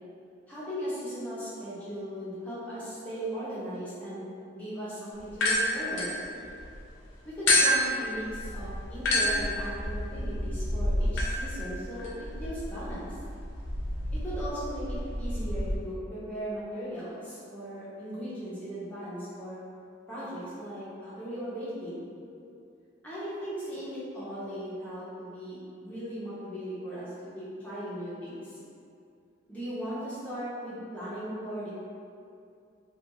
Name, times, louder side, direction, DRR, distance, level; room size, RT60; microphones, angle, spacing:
voice 1, 0.5-4.2 4.5-6.4 7.2-13.1 14.1-19.6 20.1-22.0 23.0-28.5 29.5-31.7, equal, 5° left, -11 dB, 0.7 m, -38 dB
sound 1, 5.3-6.8 7.5-15.8, left 1 dB, 75° left, 0.4 m, -29 dB
2.4 x 2.3 x 2.8 m, 2.4 s
head